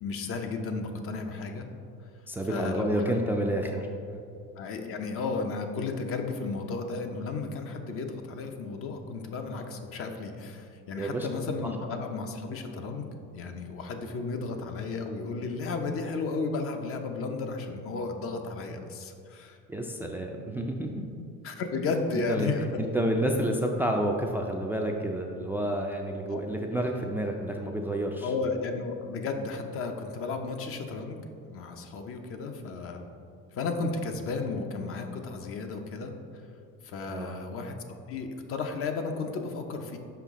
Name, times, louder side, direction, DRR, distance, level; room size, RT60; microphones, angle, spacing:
voice 1, 0.0-1.7 2.5-3.2 4.6-13.1 13.3-19.6 21.4-22.7 26.3-26.4 28.2-33.1 33.5-36.1 36.8-37.8 38.1-40.0, left 4 dB, 50° left, 5 dB, 0.7 m, -33 dB
voice 2, 2.3-4.2 11.0-11.3 11.6-11.7 19.7-20.9 22.3-22.5 22.8-28.3 37.1-37.4, right 1 dB, 5° right, 2 dB, 0.3 m, -29 dB
5.8 x 4.9 x 3.6 m, 2.4 s
cardioid pair, 115°, 29 cm